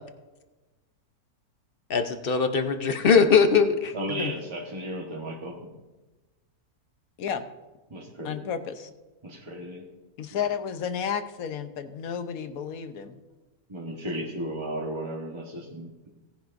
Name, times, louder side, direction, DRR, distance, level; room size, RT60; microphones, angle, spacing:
voice 1, 1.9-3.9, left 5 dB, 45° left, 7 dB, 0.8 m, -21 dB
voice 2, 3.9-5.6 7.9-8.5 9.2-9.9 13.7-16.1, right 1 dB, 20° right, -2 dB, 1.1 m, -34 dB
voice 3, 8.2-8.9 10.2-13.1, left 7 dB, 70° left, 10 dB, 1.2 m, -32 dB
17.5 x 10.5 x 2.6 m, 1.1 s
omnidirectional pair, 1.6 m